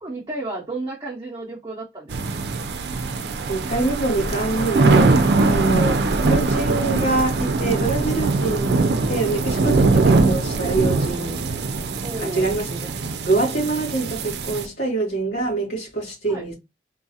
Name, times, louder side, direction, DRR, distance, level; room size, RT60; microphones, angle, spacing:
voice 1, 0.0-2.5 12.0-12.5 16.3-16.5, right 2 dB, 20° right, 0.6 m, -33 dB
sound 1, 2.1-14.6, right 3 dB, 75° right, 0.4 m, -21 dB
voice 2, 3.0-5.2 5.4-8.8 9.1-11.4 12.2-16.5, right 3 dB, 70° left, 2.3 m, -25 dB
3.8 x 2.4 x 2.7 m
head